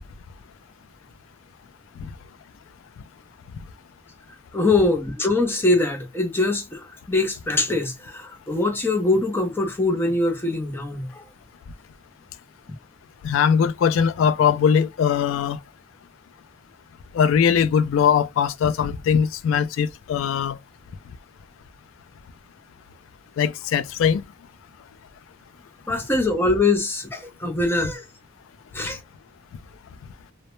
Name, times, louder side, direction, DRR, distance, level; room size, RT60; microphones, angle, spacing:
voice 1, 4.5-11.2 25.9-28.0 28.7-29.0, left 2 dB, 10° left, 0.5 m, -23 dB
voice 2, 13.2-15.6 17.1-20.6 23.4-24.2, left 7 dB, 75° left, 0.3 m, -20 dB
2.0 x 2.0 x 3.0 m
head